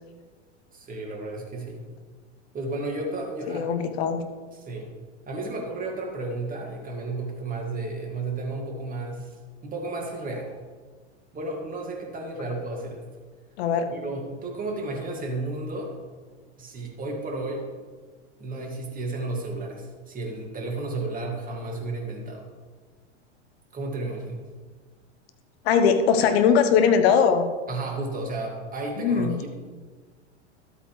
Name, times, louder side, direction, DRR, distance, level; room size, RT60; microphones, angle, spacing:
voice 1, 0.7-1.9 2.5-3.7 4.7-5.0 5.3-9.4 9.6-10.5 11.3-13.0 13.9-16.0 16.6-17.7 18.4-22.5 23.7-24.5 27.7-29.5, right 2 dB, 25° right, 0 dB, 2.3 m, -33 dB
voice 2, 3.5-4.2 13.6-13.9 25.6-27.5 29.0-29.5, left 6 dB, 60° left, 8 dB, 1.2 m, -21 dB
12.5 x 8.2 x 3.3 m, 1.5 s
hypercardioid pair, 100°, 36 cm